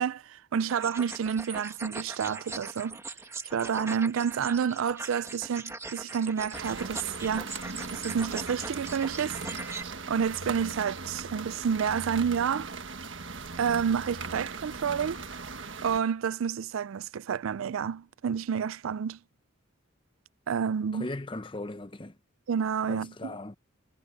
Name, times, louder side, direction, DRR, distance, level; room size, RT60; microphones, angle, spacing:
voice 1, 0.0-3.0 3.5-7.5 7.9-9.4 10.1-12.7 13.6-15.2 15.8-19.2 20.5-21.1 22.5-23.4, right 7 dB, 80° right, 0.4 m, -29 dB
sound 1, 0.7-9.8, right 3 dB, 15° right, 1.6 m, -40 dB
sound 2, 6.5-16.0, right 4 dB, 65° right, 1.6 m, -39 dB
voice 2, 20.9-22.1 22.9-23.5, left 2 dB, 25° left, 0.8 m, -38 dB
head